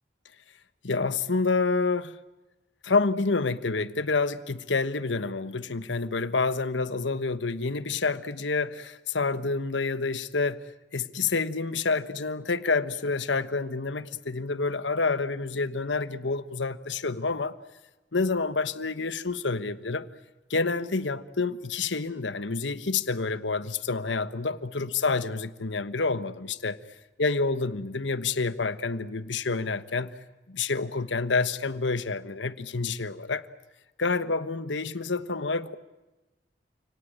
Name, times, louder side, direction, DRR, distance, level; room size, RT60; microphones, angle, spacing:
voice 1, 0.8-2.2 2.8-10.6 10.9-17.5 18.1-20.1 20.5-26.8 27.2-30.1 30.5-33.5 34.0-35.8, left 4 dB, 85° left, 13 dB, 1.2 m, -28 dB
29.5 x 18.0 x 8.9 m, 1.1 s
head